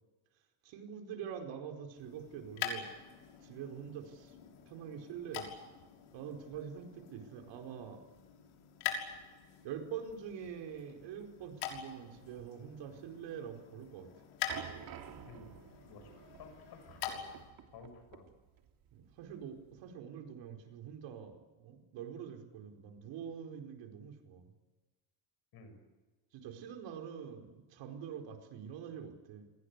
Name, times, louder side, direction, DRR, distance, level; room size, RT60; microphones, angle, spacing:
voice 1, 0.6-2.9 3.4-4.3 4.7-5.5 6.1-8.0 9.6-14.1 18.9-24.5 26.3-29.5, right 8 dB, 70° right, 4 dB, 4.8 m, -45 dB
sound 1, 1.9-17.5, left 8 dB, 90° left, 6.3 m, -45 dB
sound 2, 14.5-19.9, right 9 dB, 50° right, 3.1 m, -51 dB
voice 2, 16.4-17.3 17.7-18.3 25.5-25.8, left 4 dB, 55° left, 7 dB, 7.8 m, -54 dB
29.5 x 21.0 x 8.3 m, 1.2 s
cardioid pair, 145°, 46 cm